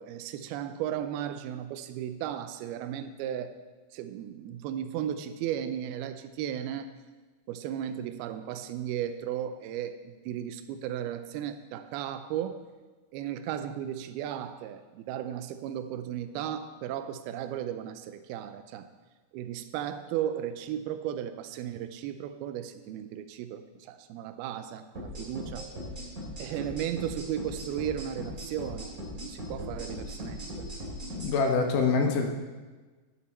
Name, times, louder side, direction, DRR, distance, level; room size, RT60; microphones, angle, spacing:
voice 1, 0.0-3.5 3.9-6.9 7.5-12.6 13.1-18.9 19.3-25.7 26.4-30.7, right 10 dB, 85° right, 9 dB, 2.5 m, -35 dB
sound 1, 24.9-31.3, equal, 20° right, 3.6 m, -39 dB
voice 2, 31.1-32.3, left 4 dB, 65° left, 3 dB, 2.5 m, -25 dB
12.5 x 9.4 x 4.3 m, 1.3 s
omnidirectional pair, 4.5 m